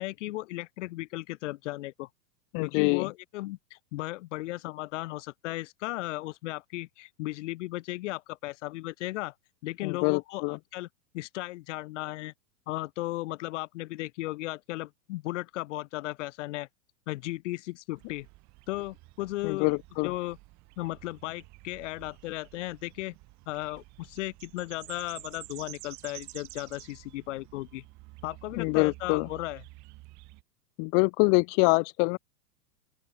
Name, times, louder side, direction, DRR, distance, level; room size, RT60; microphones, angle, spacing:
voice 1, 0.0-2.1 2.6-9.3 9.6-10.9 11.1-12.3 12.7-16.7 17.1-18.3 18.7-19.7 20.0-20.4 20.8-23.2 23.5-27.8 28.2-29.6, left 18 dB, 45° left, 1.1 m, -36 dB
voice 2, 2.5-3.1 9.8-10.6 19.4-20.1 28.5-29.3 30.8-32.2, left 40 dB or more, 25° left, 0.6 m, -25 dB
sound 1, 17.9-30.4, right 22 dB, 35° right, 2.6 m, -50 dB
open air
figure-of-eight pair, 105°, 49 cm